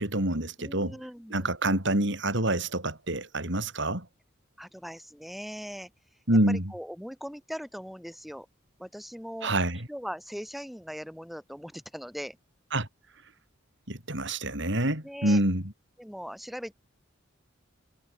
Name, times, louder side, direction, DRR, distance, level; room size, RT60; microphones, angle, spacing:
voice 1, 0.0-1.0 1.3-4.1 6.3-6.7 9.4-9.9 12.7-12.9 13.9-15.7, right 1 dB, 65° right, 7.1 m, -27 dB
voice 2, 0.6-1.5 4.6-5.9 6.5-8.5 8.8-9.5 9.9-12.4 15.0-15.4 16.0-16.7, equal, ahead, 7.9 m, -40 dB
head